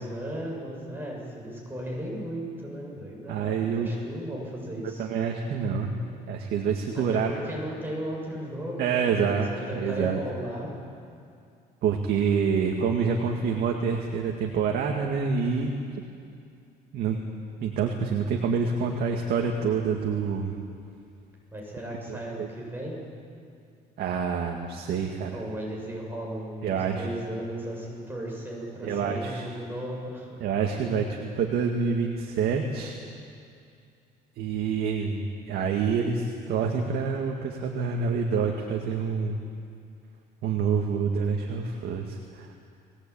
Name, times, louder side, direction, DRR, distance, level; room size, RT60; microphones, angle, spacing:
voice 1, 0.0-5.1 7.0-10.7 21.5-23.0 25.3-30.4, right 1 dB, 10° right, -2 dB, 7.6 m, -36 dB
voice 2, 3.3-3.9 5.0-5.9 6.3-7.3 8.8-10.2 11.8-15.7 16.9-17.2 17.6-20.5 22.1-22.5 24.0-25.4 26.6-27.1 28.8-29.5 30.4-33.0 34.4-39.4 40.4-42.6, right 6 dB, 70° right, 1 dB, 2.1 m, -27 dB
22.0 x 18.5 x 8.7 m, 2.4 s
cardioid pair, 110°, 17 cm